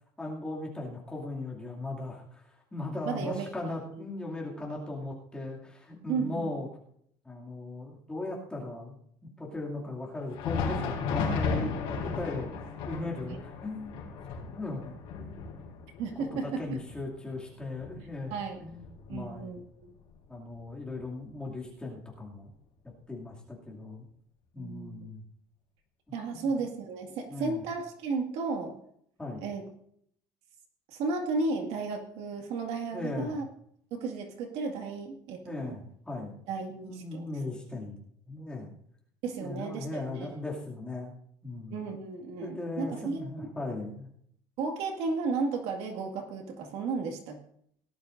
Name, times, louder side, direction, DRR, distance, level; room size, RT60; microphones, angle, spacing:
voice 1, 0.2-2.4 2.7-6.7 7.2-9.0 9.4-14.0 14.5-15.4 16.3-18.8 19.1-19.5 20.3-22.5 23.1-24.1 24.5-25.2 26.3-26.5 27.3-27.6 29.2-29.5 32.9-33.4 35.4-36.4 36.7-38.0 38.3-38.7 39.4-41.1 41.4-41.8 42.4-44.1, left 2 dB, 5° left, -3 dB, 2.5 m, -38 dB
voice 2, 3.1-3.5 6.1-6.5 16.0-16.8 18.3-18.6 19.1-19.9 24.6-25.1 26.1-28.8 29.4-29.6 30.9-33.4 33.9-35.8 36.5-37.2 39.2-40.4 41.7-43.5 44.6-47.4, right 4 dB, 55° right, 4 dB, 2.0 m, -34 dB
Thunder, 10.2-19.7 20.0-20.2 20.9-21.0 22.0-22.1, left 5 dB, 50° left, 4.1 m, -35 dB
18.0 x 11.5 x 2.6 m, 0.67 s
cardioid pair, 170°, 12 cm